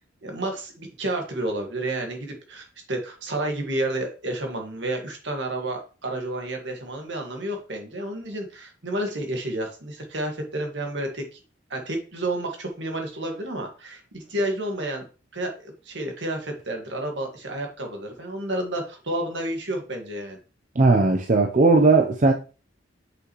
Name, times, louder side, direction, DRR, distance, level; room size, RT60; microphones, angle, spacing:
voice 1, 0.2-11.4 11.7-15.1 15.3-20.4, right 1 dB, 70° right, 1.8 m, -30 dB
voice 2, 20.8-22.3, right 3 dB, 40° right, 0.6 m, -17 dB
6.2 x 5.7 x 3.1 m
head